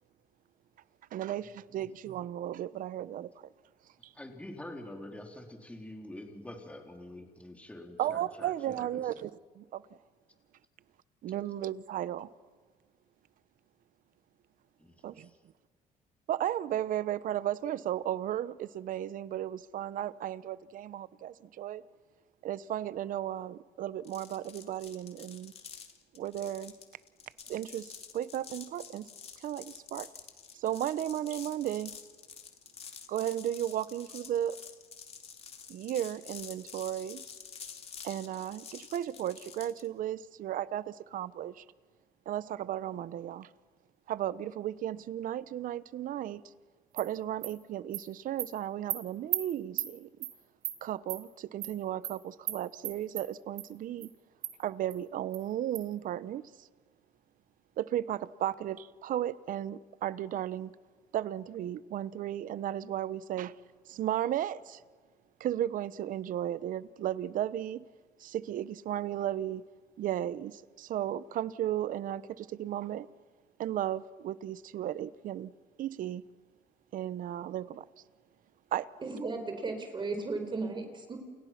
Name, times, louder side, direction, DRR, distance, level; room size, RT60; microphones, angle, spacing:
voice 1, 1.1-3.3 8.0-9.3 9.6-9.8 11.2-12.3 15.0-15.3 16.3-21.8 22.4-25.5 26.1-26.7 27.5-29.1 29.4-30.1 30.5-31.9 33.1-34.6 35.7-37.2 38.0-41.6 42.3-43.5 44.1-46.4 46.9-50.1 50.8-54.1 54.6-56.7 57.8-60.7 61.1-63.5 63.9-64.8 65.4-67.8 68.2-69.6 70.0-73.1 73.6-75.5 75.8-76.2 76.9-77.8 78.7-78.9, right 11 dB, 60° right, 0.9 m, -35 dB
voice 2, 4.1-9.0 14.8-15.3, left 1 dB, 10° left, 3.6 m, -46 dB
sound 1, 24.0-39.9, left 6 dB, 40° left, 2.7 m, -48 dB
Animal, 47.0-47.1 47.4-47.5 47.9-48.0 48.4-48.5 48.9-49.0 49.3-49.4 49.8-49.9 50.2-50.3 50.6-50.8 51.1-51.2 51.6-51.7 52.0-52.1 52.5-52.6 52.8-53.2 53.6-53.7 54.0-54.1 54.4-54.5 54.9-55.0 55.3-55.4 55.7-55.8, right 13 dB, 85° right, 3.0 m, -34 dB
voice 3, 79.0-81.2, right 3 dB, 30° right, 4.4 m, -35 dB
29.0 x 28.5 x 6.0 m
cardioid pair, 115°, 15 cm